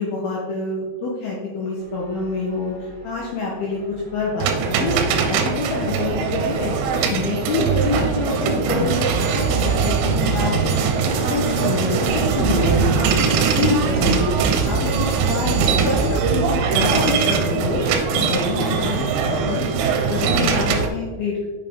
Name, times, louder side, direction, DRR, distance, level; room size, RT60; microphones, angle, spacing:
voice 1, 0.0-2.7 3.0-5.0 5.3-19.6 20.1-21.5, left 3 dB, 80° left, -3 dB, 2.2 m, -26 dB
sound 1, 1.8-20.8, right 2 dB, 55° right, 2.0 m, -32 dB
sound 2, 4.4-20.9, right 6 dB, 90° right, 3.3 m, -21 dB
7.2 x 6.9 x 3.7 m, 1.4 s
omnidirectional pair, 5.8 m